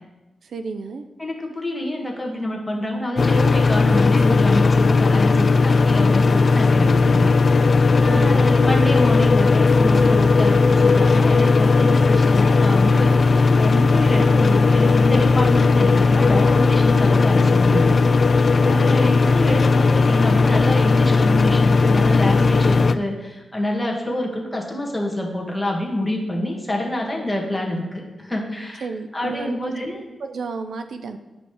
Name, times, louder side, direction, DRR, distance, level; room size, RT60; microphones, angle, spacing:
voice 1, 0.4-1.1 8.1-8.5 18.7-19.0 28.8-29.7 30.2-31.2, right 4 dB, 75° right, 8 dB, 0.5 m, -31 dB
voice 2, 1.2-7.3 8.0-18.0 18.3-28.9 29.1-30.0, left 1 dB, 10° left, 0 dB, 1.6 m, -26 dB
sound 1, 3.2-23.0, left 4 dB, 50° left, 0.3 m, -16 dB
9.5 x 5.2 x 4.8 m, 1.1 s
cardioid pair, 95°, 0 cm